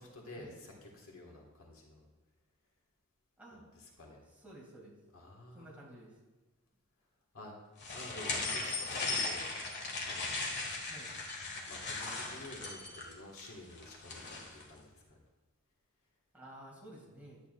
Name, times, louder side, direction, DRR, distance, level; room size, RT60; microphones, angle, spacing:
voice 1, 0.0-2.1 3.5-4.2 5.1-5.9 7.3-7.6 7.9-9.5 10.0-10.6 11.7-15.2, left 1 dB, 75° left, -1 dB, 1.7 m, -51 dB
voice 2, 4.4-4.9 5.5-6.1 10.9-11.1 16.3-17.4, right 1 dB, 10° right, -5 dB, 2.3 m, -52 dB
sound 1, 7.8-14.6, left 3 dB, 55° left, 1.6 m, -38 dB
11.0 x 8.7 x 2.5 m, 1.2 s
head